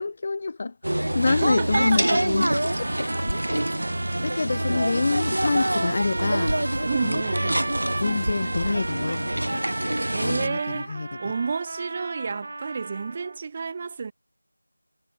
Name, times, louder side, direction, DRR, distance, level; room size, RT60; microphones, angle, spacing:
voice 1, 0.0-2.5 2.8-2.9 4.2-6.5 7.0-7.2 8.0-9.6 10.2-11.3, left 3 dB, 25° left, 0.5 m, -27 dB
sound 1, 0.8-10.5, right 1 dB, 80° right, 1.1 m, -26 dB
voice 2, 1.2-2.3 3.6-3.7 6.9-7.8 10.1-14.1, right 5 dB, 20° right, 2.2 m, -31 dB
sound 2, 2.4-13.4, right 2 dB, 35° right, 2.7 m, -35 dB
figure-of-eight pair, 175°, 0 cm